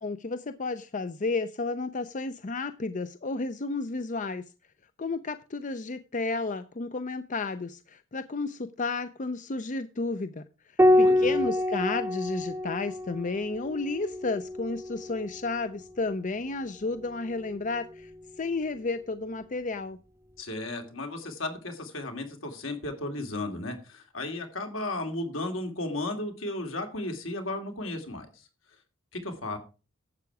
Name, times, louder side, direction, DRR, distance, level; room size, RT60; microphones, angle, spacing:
voice 1, 0.0-4.4 5.0-10.4 11.0-18.1 18.4-20.0, left 3 dB, 40° left, 12 dB, 0.6 m, -32 dB
Piano, 10.8-15.6 17.3-18.1, left 1 dB, 15° right, 0.5 m, -27 dB
voice 2, 10.9-11.4 20.4-28.5 29.1-29.6, left 2 dB, 75° left, 5 dB, 2.7 m, -34 dB
12.0 x 8.1 x 4.7 m, 0.33 s
head